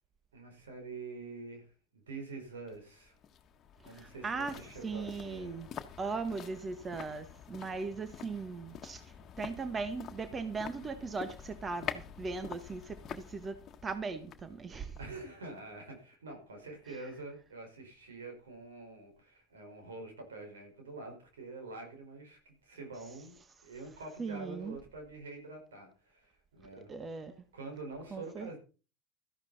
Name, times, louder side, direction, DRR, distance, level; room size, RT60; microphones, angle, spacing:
voice 1, 0.3-3.1 3.8-5.6 15.0-23.3 23.6-26.9 27.5-28.6, right 3 dB, 75° right, 4.8 m, -46 dB
sound 1, 2.7-15.8 16.1-16.2, left 8 dB, 40° left, 1.5 m, -47 dB
voice 2, 3.8-5.7 6.0-15.0 24.2-24.8 26.9-27.4 28.1-28.6, right 4 dB, 25° right, 1.4 m, -39 dB
13.5 x 11.5 x 4.1 m
figure-of-eight pair, 70°, 0 cm